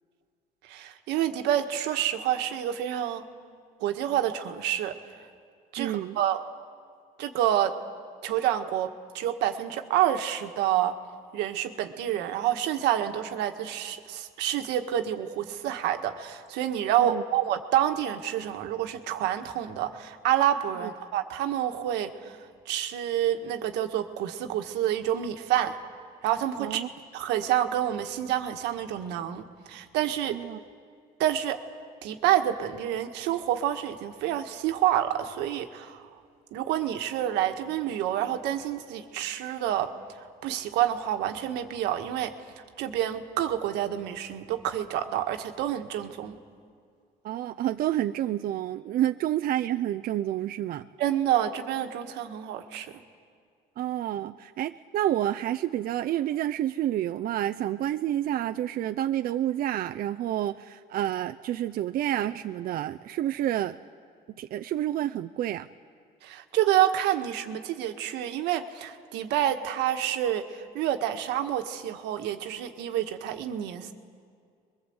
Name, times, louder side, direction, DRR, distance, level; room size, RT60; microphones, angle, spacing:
voice 1, 0.6-3.2 3.8-4.9 5.7-6.4 7.2-7.7 8.2-11.0 11.3-22.4 22.7-25.7 26.2-26.8 27.1-30.4 31.2-31.6 32.0-36.0 36.5-39.9 40.4-42.3 42.8-46.4 51.0-53.0 66.2-73.9, right 11 dB, 90° right, 6 dB, 1.5 m, -28 dB
voice 2, 5.8-6.2 17.0-17.2 20.8-20.9 26.6-26.9 30.3-30.6 47.2-50.9 53.8-63.8 64.3-65.7, right 12 dB, 60° right, 8 dB, 0.6 m, -29 dB
25.5 x 22.5 x 8.0 m, 2.3 s
cardioid pair, 110°, 17 cm